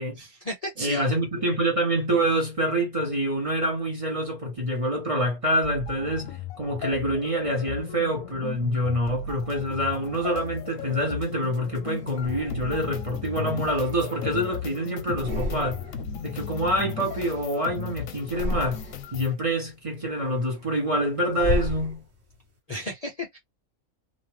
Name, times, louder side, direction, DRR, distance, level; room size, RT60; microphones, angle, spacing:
voice 1, 0.2-1.1 22.7-23.4, left 1 dB, 45° left, 0.5 m, -34 dB
voice 2, 0.8-15.8 16.2-18.8 19.1-22.0, right 1 dB, 25° right, 0.9 m, -26 dB
sound 1, 5.6-19.3, left 7 dB, 70° left, 0.9 m, -36 dB
sound 2, 10.1-11.3 12.0-13.0 13.4-14.7 15.0-16.1 16.4-17.8 18.2-19.2 19.7-22.4, left 2 dB, 50° right, 1.2 m, -35 dB
2.7 x 2.4 x 3.1 m
omnidirectional pair, 1.5 m